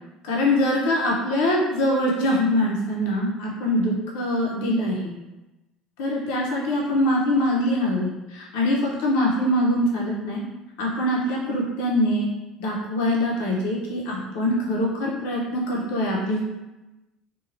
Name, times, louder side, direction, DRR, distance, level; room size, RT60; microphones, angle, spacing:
voice 1, 0.3-5.1 6.0-10.4 10.8-12.3 12.6-16.4, left 1 dB, 80° left, -3 dB, 0.6 m, -23 dB
2.5 x 2.2 x 3.1 m, 1.0 s
supercardioid pair, 115°, 0 cm